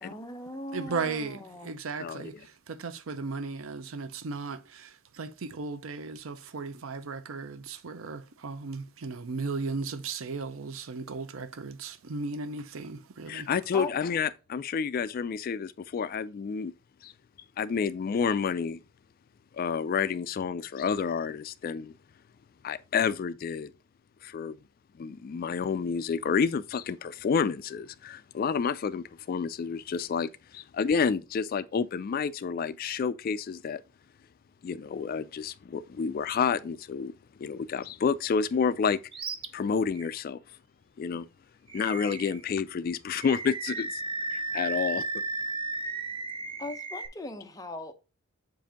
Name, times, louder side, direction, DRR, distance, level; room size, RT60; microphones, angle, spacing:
voice 1, 0.0-1.7 13.7-13.9 46.6-47.9, left 2 dB, 15° left, 0.7 m, -38 dB
voice 2, 0.7-13.5, right 4 dB, 75° right, 0.6 m, -36 dB
voice 3, 2.0-2.3 13.3-16.7 17.0-17.1 17.6-18.8 19.5-21.9 22.6-23.7 24.2-24.6 25.0-33.8 34.6-37.1 37.4-39.0 39.5-40.4 41.0-41.3 41.7-44.0 44.3-45.0, left 6 dB, 45° left, 0.3 m, -29 dB
Animal, 39.1-39.5 39.9-40.1 41.7-42.4 43.1-47.1, right 3 dB, 25° right, 0.5 m, -34 dB
7.5 x 2.6 x 5.0 m
head